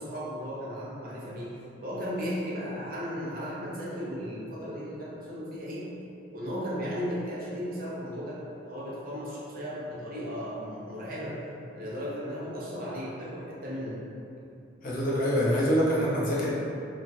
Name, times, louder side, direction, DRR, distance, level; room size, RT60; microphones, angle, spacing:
voice 1, 0.0-1.6 1.8-5.9 6.3-11.4 11.7-14.0, equal, 50° right, -6 dB, 0.6 m, -35 dB
voice 2, 14.8-16.5, equal, 45° left, -7 dB, 0.6 m, -25 dB
3.0 x 2.3 x 2.6 m, 2.7 s
head